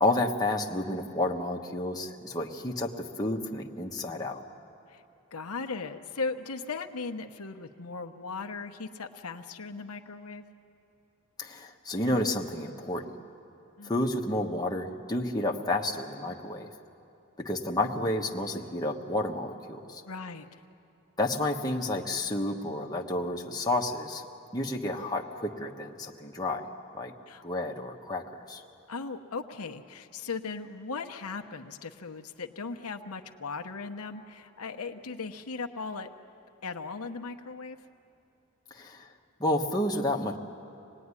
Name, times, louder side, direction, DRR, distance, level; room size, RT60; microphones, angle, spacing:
voice 1, 0.0-4.4 11.4-13.2 13.8-16.7 17.4-20.0 21.2-24.3 24.5-26.7 26.9-27.1 27.4-28.6 38.7-39.1 39.4-40.4, left 1 dB, 20° left, 0 dB, 1.3 m, -30 dB
voice 2, 5.3-10.4 13.8-13.9 20.0-20.6 27.3-27.4 28.9-36.1 36.6-37.8, left 4 dB, 90° left, 5 dB, 1.0 m, -38 dB
25.5 x 19.0 x 9.8 m, 2.7 s
head